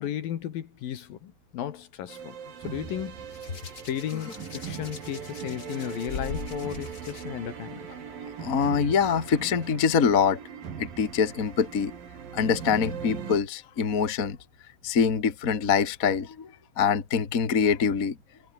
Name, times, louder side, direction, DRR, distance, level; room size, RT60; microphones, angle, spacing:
voice 1, 0.0-2.4 2.6-3.2 3.9-7.9, left 10 dB, 60° left, 2.8 m, -34 dB
sound 1, 2.1-13.4, right 7 dB, 50° right, 4.5 m, -40 dB
Hands, 3.3-7.2 8.3-8.5, left 5 dB, 40° left, 1.4 m, -41 dB
voice 2, 8.4-10.4 10.8-11.9 12.3-14.4 14.8-16.5 16.8-18.2, left 6 dB, 90° left, 0.7 m, -24 dB
omnidirectional pair, 5.7 m